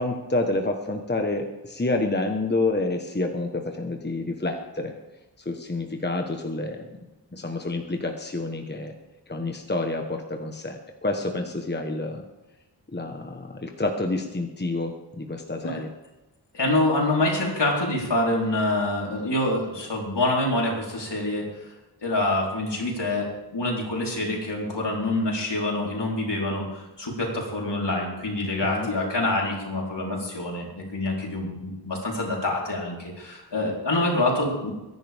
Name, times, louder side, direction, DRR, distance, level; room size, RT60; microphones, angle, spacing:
voice 1, 0.0-4.9 5.4-6.9 7.3-8.9 9.3-12.2 12.9-15.9 28.6-28.9, left 2 dB, 25° left, 3 dB, 1.3 m, -28 dB
voice 2, 16.5-21.5 22.0-34.7, left 2 dB, 70° left, -2 dB, 4.1 m, -26 dB
23.0 x 10.5 x 3.6 m, 1.0 s
wide cardioid pair, 85°, 44 cm